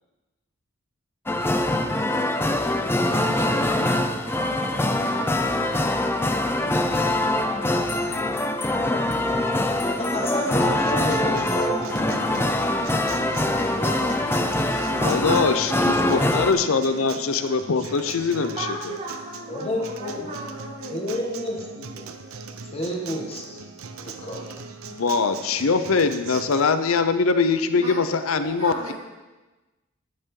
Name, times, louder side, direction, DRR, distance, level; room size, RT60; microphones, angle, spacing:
sound 1, 1.3-16.5, left 1 dB, 10° left, 0.5 m, -23 dB
voice 1, 3.0-9.2 15.0-16.6 18.3-21.0 27.7-28.9, right 2 dB, 30° right, -7 dB, 3.7 m, -37 dB
voice 2, 10.0-12.5 13.7-14.3 19.5-20.3 20.9-22.1 22.7-23.4 24.0-24.4, left 1 dB, 30° left, -1 dB, 1.5 m, -30 dB
Acoustic guitar, 10.6-26.6, right 4 dB, 90° right, 0.7 m, -39 dB
voice 3, 15.0-18.7 24.9-28.9, left 4 dB, 80° left, 10 dB, 0.6 m, -22 dB
12.0 x 9.5 x 3.8 m, 1.2 s
head